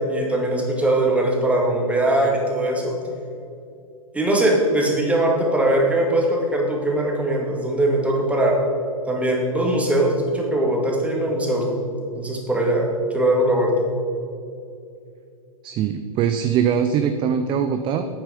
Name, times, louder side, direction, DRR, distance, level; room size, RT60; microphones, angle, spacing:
voice 1, 0.1-3.0 4.1-8.6 9.1-11.8 12.1-13.9, right 1 dB, 5° right, -1 dB, 2.1 m, -21 dB
voice 2, 15.6-18.1, right 8 dB, 25° right, 8 dB, 0.5 m, -22 dB
9.1 x 8.9 x 5.1 m, 2.5 s
hypercardioid pair, 110°, 19 cm